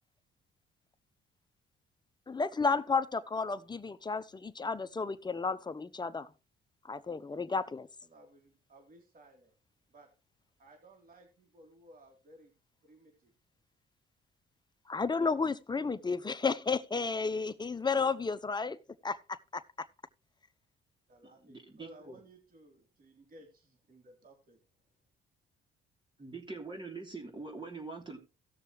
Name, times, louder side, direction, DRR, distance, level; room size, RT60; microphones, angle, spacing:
voice 1, 2.3-6.3 6.8-7.9 14.9-18.8 19.0-19.6, left 4 dB, 20° left, 0.8 m, -32 dB
voice 2, 8.0-9.6 9.9-10.1 10.6-12.5 12.8-13.3 21.1-24.6, right 1 dB, 45° right, 3.3 m, -58 dB
voice 3, 21.4-22.2 26.2-28.2, right 3 dB, 25° right, 3.1 m, -43 dB
17.5 x 6.7 x 3.1 m
cardioid pair, 90°, 20 cm